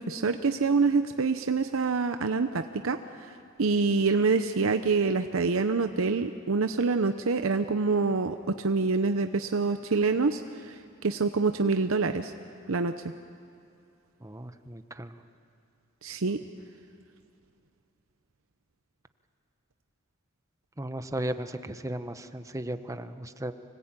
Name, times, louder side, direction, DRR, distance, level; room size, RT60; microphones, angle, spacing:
voice 1, 0.0-3.3 3.6-12.3 12.7-12.9 16.0-16.4, right 4 dB, 85° right, 8 dB, 0.8 m, -26 dB
voice 2, 14.2-15.1 20.8-23.5, right 1 dB, 15° right, 10 dB, 0.9 m, -35 dB
25.0 x 19.0 x 8.9 m, 2.5 s
head